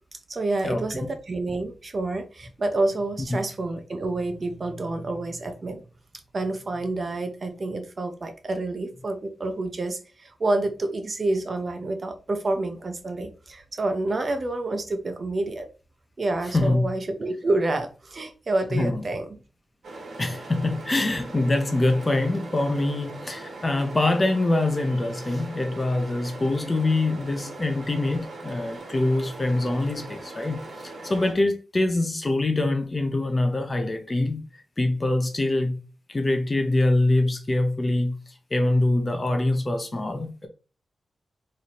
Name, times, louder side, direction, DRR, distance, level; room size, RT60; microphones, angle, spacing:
voice 1, 0.3-5.8 6.3-15.7 16.2-19.3, right 2 dB, 35° right, 0.5 m, -28 dB
voice 2, 16.5-16.9 18.7-19.0 20.2-35.8 36.1-38.1 38.5-40.5, left 2 dB, 20° left, 0.5 m, -24 dB
sound 1, 19.8-31.3, right 2 dB, 80° right, 1.2 m, -40 dB
3.1 x 2.6 x 4.1 m
wide cardioid pair, 180°, 0 cm